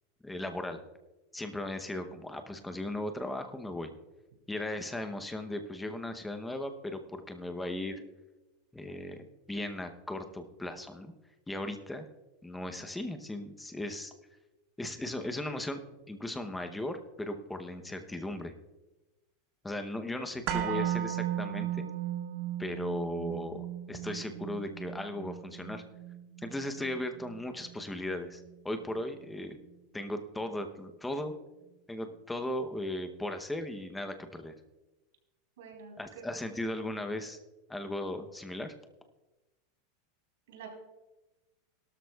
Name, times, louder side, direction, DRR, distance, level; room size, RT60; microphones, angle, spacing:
voice 1, 0.2-0.8 1.3-3.9 4.5-8.0 8.7-11.1 11.5-12.1 12.4-14.1 14.8-15.8 16.1-18.5 19.6-21.9 22.6-25.8 26.4-29.6 29.9-31.3 31.9-34.5 36.0-37.4 37.7-38.7, left 1 dB, 5° left, 7 dB, 0.8 m, -37 dB
sound 1, 20.5-28.5 28.8-28.9, right 11 dB, 45° right, 1.2 m, -36 dB
voice 2, 20.5-20.9 35.6-36.3 40.5-40.7, right 6 dB, 80° right, 1 dB, 3.9 m, -46 dB
17.5 x 12.5 x 2.3 m, 1.1 s
supercardioid pair, 165°, 0 cm